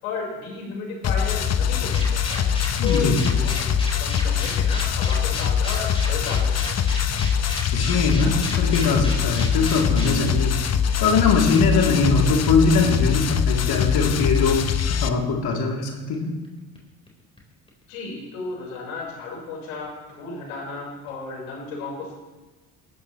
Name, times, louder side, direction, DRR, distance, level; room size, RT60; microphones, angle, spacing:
voice 1, 0.0-2.5 2.8-6.9 17.9-22.2, left 4 dB, 90° left, -2 dB, 5.1 m, -34 dB
sound 1, 1.0-15.1, left 8 dB, 35° left, 1.0 m, -23 dB
sound 2, 1.9-12.1 12.4-12.5 12.7-12.8 13.1-13.2 13.4-13.7 14.0-14.1 14.3-14.6 14.9-15.2 15.5-15.6 15.8-16.5 16.8-17.4 17.7-17.8 19.8-19.9 20.2-20.3 20.5-20.6 20.8-20.9 21.1-21.2, left 1 dB, 15° left, 4.7 m, -34 dB
voice 2, 2.8-3.3 7.6-10.5 11.0-14.6 15.0-16.4, left 4 dB, 60° left, -1 dB, 3.4 m, -21 dB
20.0 x 13.5 x 3.3 m, 1.2 s
hypercardioid pair, 70°, 42 cm